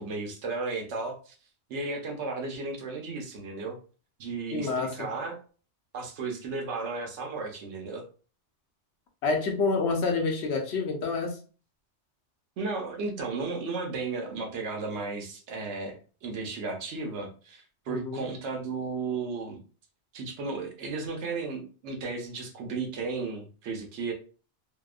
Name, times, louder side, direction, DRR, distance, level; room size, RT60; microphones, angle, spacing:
voice 1, 0.0-1.3 1.7-3.8 4.2-5.4 5.9-8.0 12.6-19.6 20.1-24.1, right 4 dB, 80° right, 3 dB, 1.0 m, -34 dB
voice 2, 4.5-5.1 9.2-11.4 17.9-18.3, left 4 dB, 75° left, 2 dB, 0.9 m, -28 dB
2.8 x 2.1 x 2.3 m, 0.38 s
omnidirectional pair, 1.2 m